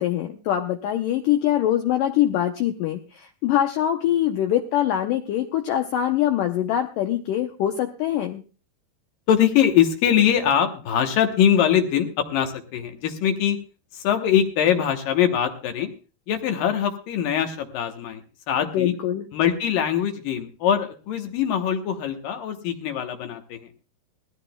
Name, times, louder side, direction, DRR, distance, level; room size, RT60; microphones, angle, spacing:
voice 1, 0.0-8.4 18.7-19.3, left 11 dB, 85° left, 5 dB, 1.9 m, -23 dB
voice 2, 9.3-13.6 13.9-15.9 16.3-18.2 18.5-18.9 19.3-23.7, left 9 dB, 70° left, 5 dB, 2.4 m, -22 dB
21.0 x 14.5 x 2.2 m, 0.34 s
omnidirectional pair, 4.7 m